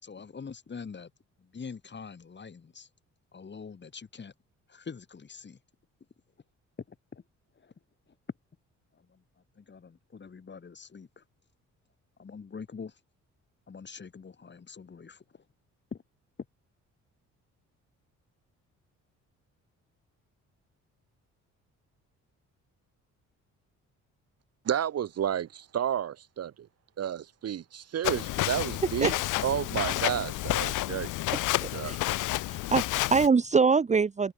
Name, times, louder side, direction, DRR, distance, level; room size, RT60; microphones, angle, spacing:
voice 1, 0.0-1.1 1.4-2.9 3.3-4.3 4.7-5.6 6.9-7.2 7.5-7.7 8.1-8.2 8.9-11.2 12.2-13.0 13.7-15.5 15.9-16.0, left 5 dB, 35° left, 5.0 m, -45 dB
voice 2, 24.6-26.7 27.0-29.1 29.4-31.1 31.7-32.0, right 10 dB, 55° right, 1.3 m, -31 dB
Walk footsteps, 28.0-33.3, left 17 dB, 85° left, 1.1 m, -30 dB
voice 3, 31.6-32.0 32.5-34.3, right 5 dB, 25° right, 0.8 m, -24 dB
cardioid pair, 90°, 30 cm